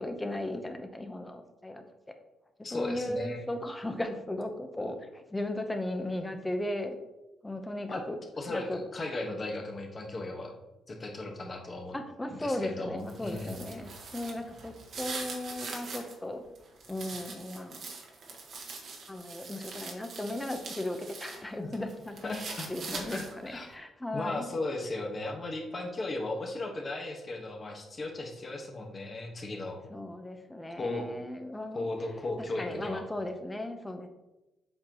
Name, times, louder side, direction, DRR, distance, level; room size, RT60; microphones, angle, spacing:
voice 1, 0.0-1.8 2.7-7.0 7.4-8.1 8.5-8.8 11.9-16.4 16.9-17.8 19.1-24.5 29.9-31.9 32.4-34.1, left 1 dB, 15° left, 6 dB, 0.8 m, -36 dB
voice 2, 2.6-3.5 7.9-8.0 8.4-10.5 10.9-12.0 12.3-13.6 22.2-23.7 24.1-29.8 30.8-31.0 31.7-33.0, left 2 dB, 35° left, 1 dB, 1.3 m, -36 dB
sound 1, 13.0-16.1 16.5-21.4 21.7-23.5, right 4 dB, 65° right, 1.4 m, -42 dB
7.7 x 4.4 x 2.9 m, 1.0 s
cardioid pair, 90°, 0 cm